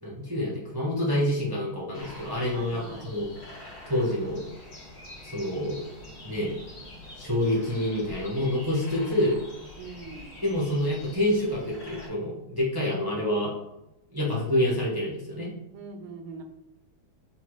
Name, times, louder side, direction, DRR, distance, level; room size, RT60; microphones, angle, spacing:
voice 1, 0.0-2.8 3.1-3.3 3.9-4.4 5.2-5.8 6.2-6.6 7.2-9.3 10.4-13.5 14.1-15.5, left 1 dB, 25° right, -6 dB, 0.4 m, -27 dB
sound 1, 1.9-12.1, left 2 dB, 65° left, 2.2 m, -45 dB
voice 2, 2.5-3.2 9.8-10.4 15.7-16.4, right 4 dB, 80° right, 6 dB, 1.5 m, -42 dB
6.9 x 2.4 x 3.1 m, 0.90 s
omnidirectional pair, 2.3 m